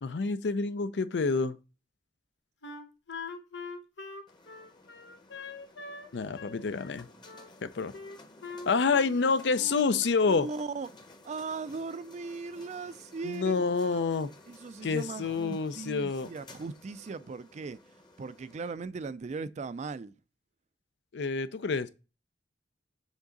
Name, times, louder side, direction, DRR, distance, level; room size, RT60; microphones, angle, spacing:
voice 1, 0.0-1.6 6.1-7.1 7.6-7.9 8.7-10.5 13.2-14.3 14.8-16.3 21.1-21.9, left 4 dB, 70° left, 0.5 m, -28 dB
Wind instrument woodwind instrument, 2.6-6.1 6.3-7.5 7.9-9.2 9.5-10.0, left 3 dB, 85° left, 1.0 m, -43 dB
sound 1, 4.3-18.7, left 2 dB, 25° left, 0.9 m, -55 dB
voice 2, 10.2-10.9 11.2-13.6 13.9-14.0 14.5-17.8 18.2-20.1, right 4 dB, 40° right, 0.4 m, -38 dB
7.3 x 3.7 x 3.9 m
head